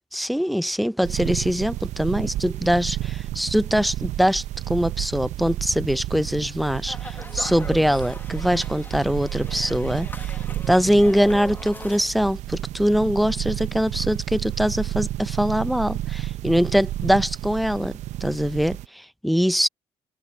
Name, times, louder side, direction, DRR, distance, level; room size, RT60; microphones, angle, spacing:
voice 1, 0.1-10.3 10.7-19.7, equal, ahead, 0.5 m, -23 dB
sound 1, 1.0-18.9, right 14 dB, 75° right, 0.7 m, -31 dB
sound 2, 6.9-12.0, left 2 dB, 15° left, 0.9 m, -40 dB
open air
cardioid pair, 85°, 12 cm